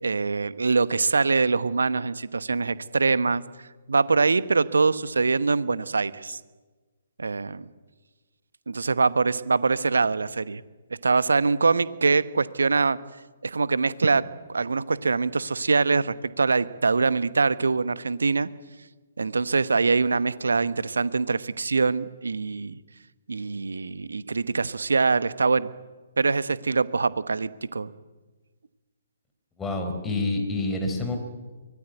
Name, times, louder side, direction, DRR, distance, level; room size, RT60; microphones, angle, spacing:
voice 1, 0.0-3.4 3.9-6.4 7.2-7.7 8.7-10.6 11.0-13.0 13.4-14.2 14.5-18.5 19.2-22.7 23.3-25.7 26.2-27.9, right 4 dB, 70° right, 16 dB, 1.0 m, -23 dB
voice 2, 29.6-31.2, left 2 dB, 10° left, 4 dB, 4.1 m, -27 dB
24.0 x 19.0 x 9.2 m, 1.3 s
figure-of-eight pair, 130°, 0 cm